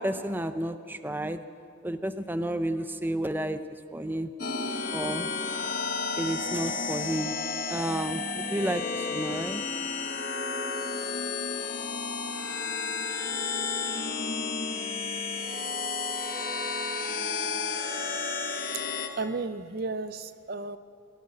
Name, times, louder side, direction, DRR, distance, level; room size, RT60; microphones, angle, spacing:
voice 1, 0.0-1.4 1.8-3.6 3.9-4.3 4.9-5.3 6.2-7.3 7.7-9.6, right 1 dB, 10° right, 10 dB, 0.6 m, -31 dB
sound 1, 4.4-19.1, left 4 dB, 45° left, 1.6 m, -32 dB
voice 2, 19.2-20.8, right 3 dB, 50° right, 12 dB, 0.5 m, -33 dB
23.0 x 15.5 x 7.7 m, 2.4 s
head